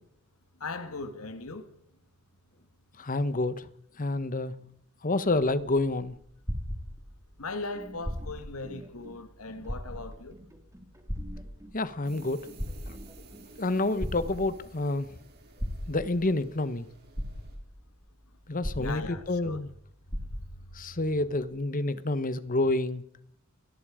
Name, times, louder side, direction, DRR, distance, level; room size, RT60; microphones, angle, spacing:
voice 1, 0.6-1.7 7.4-10.4 18.7-19.6, left 3 dB, 75° left, 2.0 m, -38 dB
voice 2, 3.0-3.6 4.0-4.5 5.0-6.1 11.7-12.4 13.6-15.1 15.9-16.8 18.5-19.7 20.8-23.0, left 2 dB, 40° left, 1.2 m, -28 dB
sound 1, 5.3-7.3 7.9-8.6 9.0-9.1 9.6-10.3 11.1-11.9 12.4-13.3 14.0-14.7 15.6-16.3 16.8-16.9 17.1-17.9 18.6-19.4 19.7-19.8 20.1-20.7 21.4-21.5, equal, ahead, 4.1 m, -36 dB
sound 2, 7.5-14.3, equal, 15° right, 3.0 m, -51 dB
sound 3, 12.0-17.6, right 3 dB, 50° right, 5.1 m, -55 dB
29.5 x 21.5 x 5.1 m
head